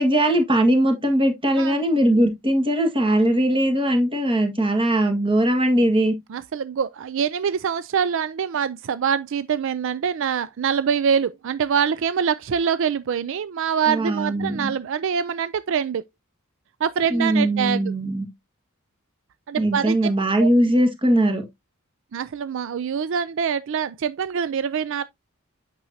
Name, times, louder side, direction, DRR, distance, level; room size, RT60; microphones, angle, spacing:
voice 1, 0.0-6.1 13.9-14.7 17.1-18.2 19.6-21.4, right 1 dB, 25° right, 1.6 m, -20 dB
voice 2, 6.3-16.1 16.8-17.9 19.5-20.0 20.4-20.5 22.1-25.0, right 7 dB, 60° right, 0.4 m, -24 dB
8.7 x 6.1 x 2.7 m
head